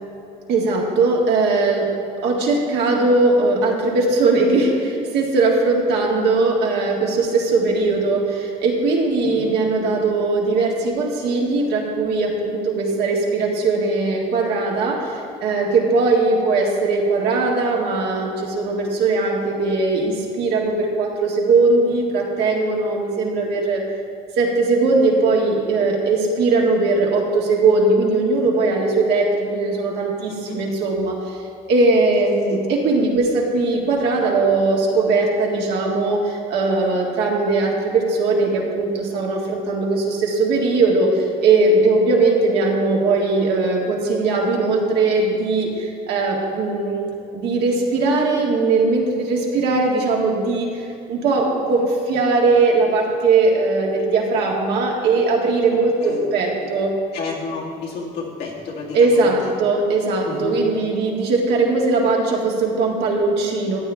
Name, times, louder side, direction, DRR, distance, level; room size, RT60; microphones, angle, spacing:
voice 1, 0.5-1.8 2.2-23.8 24.4-31.4 31.7-56.9 58.9-63.8, right 3 dB, 80° right, -2 dB, 2.0 m, -19 dB
voice 2, 9.2-9.6 30.3-30.6 32.5-32.6 56.0-56.2 56.6-56.7 57.1-59.5 60.2-60.6, left 4 dB, 75° left, -3 dB, 2.3 m, -31 dB
14.5 x 8.6 x 3.5 m, 2.5 s
cardioid pair, 110°, 17 cm